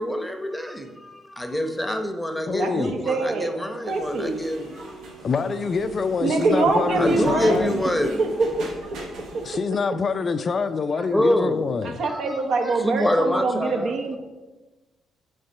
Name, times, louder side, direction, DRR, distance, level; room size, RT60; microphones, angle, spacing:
voice 1, 0.0-5.0 7.0-8.2 11.1-11.6 12.0-13.9, left 1 dB, 5° left, 0.8 m, -26 dB
voice 2, 2.5-2.9 5.2-7.7 9.4-12.0, left 5 dB, 45° left, 0.4 m, -25 dB
voice 3, 3.0-3.5 3.9-4.4 6.2-7.6 8.2-8.3 8.6-9.0 9.3-9.4 11.0-11.1 12.0-14.2, right 3 dB, 70° right, 1.0 m, -24 dB
sound 1, 3.9-9.6, right 2 dB, 90° right, 1.3 m, -36 dB
6.6 x 3.9 x 5.4 m
cardioid pair, 90°, 0 cm